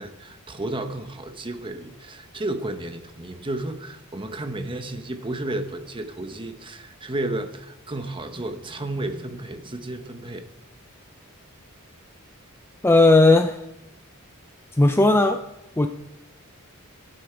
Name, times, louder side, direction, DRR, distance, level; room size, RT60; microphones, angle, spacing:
voice 1, 0.0-10.4, right 1 dB, 25° right, 8 dB, 1.1 m, -32 dB
voice 2, 12.8-13.6 14.7-15.4 15.8-15.9, left 2 dB, 10° left, 7 dB, 0.4 m, -16 dB
21.5 x 8.7 x 4.6 m, 0.91 s
head